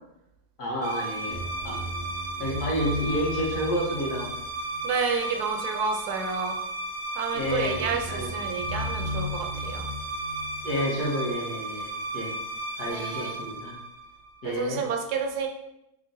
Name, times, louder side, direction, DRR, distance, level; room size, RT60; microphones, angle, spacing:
voice 1, 0.6-1.8 2.4-4.3 7.3-8.4 10.6-12.3 12.8-13.7 14.4-14.8, equal, 80° left, -4 dB, 1.6 m, -30 dB
sound 1, 0.8-14.4, right 1 dB, 50° right, 0.5 m, -33 dB
voice 2, 4.8-6.6 7.2-9.9 12.8-13.4 14.4-15.5, right 5 dB, 85° right, 3 dB, 1.2 m, -30 dB
3.7 x 3.7 x 2.6 m, 0.85 s
omnidirectional pair, 1.6 m